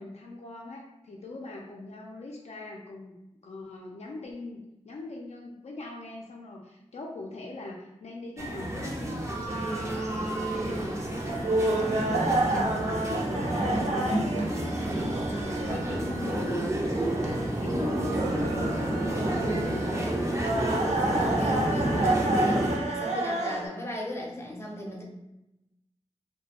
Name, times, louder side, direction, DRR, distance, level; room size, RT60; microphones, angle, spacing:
voice 1, 0.0-3.2 3.4-19.2 19.5-20.5 21.0-21.5, left 2 dB, 70° left, -1 dB, 0.4 m, -42 dB
sound 1, 8.4-22.8, right 1 dB, 25° right, 0.5 m, -30 dB
Carnatic varnam by Prasanna in Kalyani raaga, 9.5-23.7, right 2 dB, 80° right, 0.4 m, -31 dB
voice 2, 19.0-19.6 20.8-25.0, equal, 20° left, -2 dB, 0.6 m, -37 dB
2.3 x 2.1 x 2.8 m, 0.91 s
wide cardioid pair, 70°, 12 cm